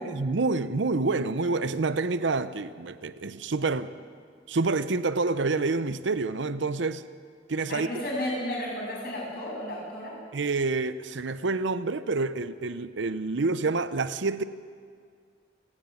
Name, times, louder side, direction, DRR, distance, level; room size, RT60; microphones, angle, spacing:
voice 1, 0.0-3.9 4.5-7.0 7.5-7.9 10.3-14.4, right 3 dB, 80° right, 0.7 m, -28 dB
voice 2, 7.7-10.2, left 1 dB, 55° left, 7.8 m, -33 dB
28.5 x 10.0 x 9.1 m
head